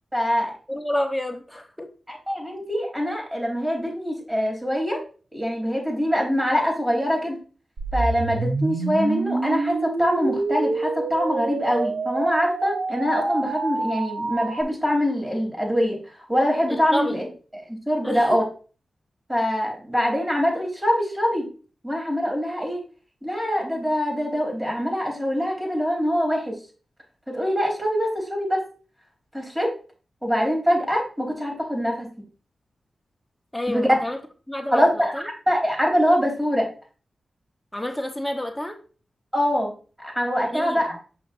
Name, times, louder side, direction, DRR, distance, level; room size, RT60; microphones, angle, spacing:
voice 1, 0.1-0.5 2.1-5.0 5.3-7.4 7.9-16.0 16.3-17.3 17.7-18.4 19.3-21.5 21.8-22.8 23.2-26.5 27.3-28.6 29.3-29.7 30.2-32.1 33.7-33.9 34.7-35.1 35.5-36.7 39.3-39.7 40.0-41.0, equal, 15° right, 0 dB, 3.5 m, -23 dB
voice 2, 0.7-1.9 16.7-17.2 18.0-18.4 33.5-34.2 34.5-35.3 37.7-38.8 40.5-40.8, left 1 dB, 10° left, 5 dB, 1.1 m, -29 dB
sound 1, 7.8-14.6, right 3 dB, 70° right, 0.6 m, -27 dB
6.2 x 5.8 x 2.6 m, 0.38 s
cardioid pair, 55°, 0 cm